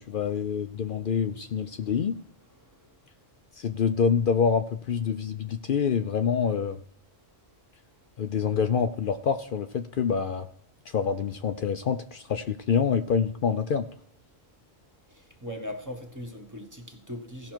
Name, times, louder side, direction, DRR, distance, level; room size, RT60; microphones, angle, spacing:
voice 1, 0.1-2.2 3.6-6.8 8.2-10.5 10.9-13.8, left 6 dB, 60° left, 0.7 m, -26 dB
voice 2, 15.1-17.5, left 1 dB, 20° right, 1.2 m, -40 dB
16.5 x 6.0 x 4.5 m
omnidirectional pair, 1.1 m